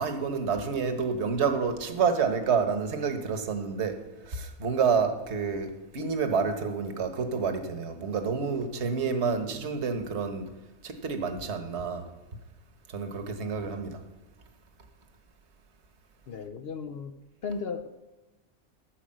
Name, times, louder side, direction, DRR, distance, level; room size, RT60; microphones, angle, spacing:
voice 1, 0.0-3.9 4.2-10.4 10.8-12.0 12.9-14.0, right 5 dB, 55° right, 6 dB, 1.4 m, -28 dB
voice 2, 16.3-17.1 17.4-17.9, left 5 dB, 60° left, 6 dB, 0.7 m, -35 dB
14.5 x 5.0 x 7.6 m, 1.1 s
omnidirectional pair, 1.5 m